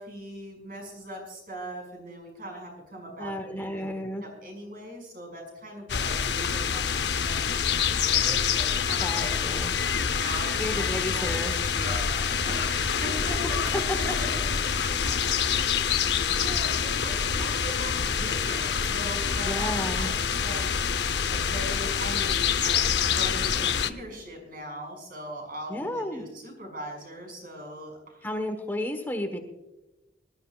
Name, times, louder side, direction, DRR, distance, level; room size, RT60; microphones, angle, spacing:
voice 1, 0.0-3.9 4.2-9.4 10.1-10.8 11.1-14.5 14.8-14.9 15.7-28.4, right 1 dB, 50° right, 1 dB, 5.7 m, -40 dB
voice 2, 3.2-4.2 9.0-9.7 10.6-11.5 13.9-14.0 19.5-20.1 25.7-26.2 28.2-29.4, left 1 dB, 10° left, 5 dB, 1.1 m, -32 dB
sound 1, 5.9-23.9, left 7 dB, 70° left, 0.7 m, -26 dB
sound 2, 10.6-15.5, equal, 25° right, 5.0 m, -43 dB
24.5 x 13.0 x 2.4 m, 1.0 s
head